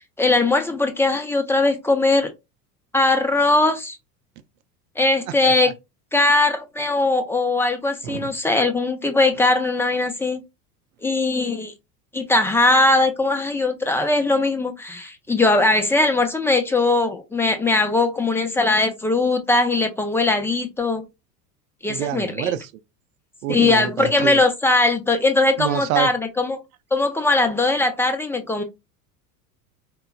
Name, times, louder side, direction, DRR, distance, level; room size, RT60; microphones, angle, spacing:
voice 1, 0.2-2.3 2.9-4.0 5.0-5.7 6.1-10.4 11.0-11.7 12.1-21.0 21.8-22.5 23.5-26.6 26.9-28.6, left 2 dB, 5° left, 0.4 m, -20 dB
voice 2, 8.0-8.4 21.9-22.7 23.4-24.4 25.6-26.1, right 11 dB, 60° right, 0.6 m, -26 dB
4.5 x 2.2 x 2.2 m
figure-of-eight pair, 75°, 48 cm